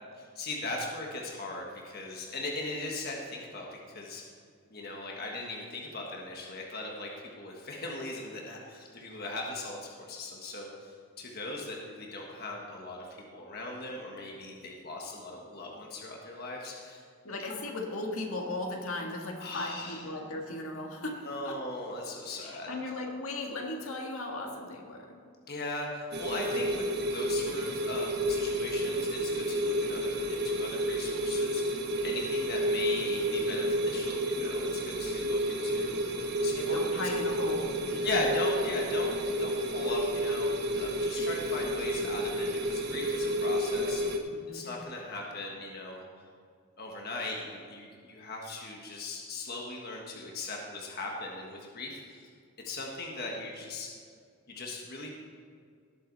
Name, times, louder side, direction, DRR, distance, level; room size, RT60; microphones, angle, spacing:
voice 1, 0.1-4.2 4.7-17.0 19.4-20.1 21.2-22.7 25.5-36.8 38.0-44.2 44.5-46.0 46.8-52.3 52.6-53.9 54.5-55.1, left 2 dB, 45° left, -1 dB, 1.4 m, -39 dB
voice 2, 17.2-21.6 22.4-25.2 36.5-38.2 44.3-44.7, left 2 dB, 75° left, 1 dB, 1.7 m, -37 dB
sound 1, 26.1-44.2, equal, 50° right, 1.2 m, -30 dB
18.0 x 7.8 x 4.0 m, 2.2 s
head